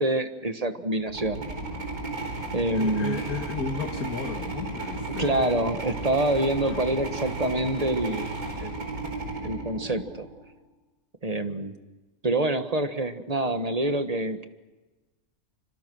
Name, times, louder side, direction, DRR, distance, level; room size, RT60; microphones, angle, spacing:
voice 1, 0.0-1.4 2.5-3.2 5.2-8.3 8.6-8.9 9.4-10.3 11.2-11.7 12.2-14.4, right 1 dB, 30° right, 8 dB, 1.4 m, -26 dB
sound 1, 1.0-10.4, right 2 dB, 80° right, 5.1 m, -34 dB
voice 2, 2.7-5.7 6.6-6.8, left 5 dB, 85° left, 5 dB, 2.0 m, -34 dB
26.0 x 26.0 x 6.2 m, 1.1 s
omnidirectional pair, 1.5 m